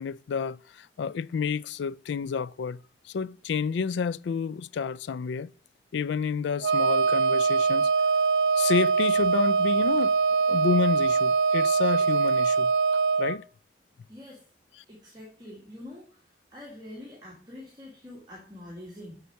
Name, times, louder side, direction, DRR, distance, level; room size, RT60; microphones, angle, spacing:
voice 1, 0.0-2.8 3.0-5.5 5.9-7.9 8.6-10.2 10.5-12.7 13.2-13.4, left 5 dB, 80° left, 0.3 m, -29 dB
Wind instrument woodwind instrument, 6.6-13.4, right 4 dB, 80° right, 0.6 m, -23 dB
voice 2, 14.1-14.4 14.9-16.2 16.5-19.2, left 1 dB, 25° right, 2.0 m, -45 dB
7.0 x 6.5 x 4.6 m
head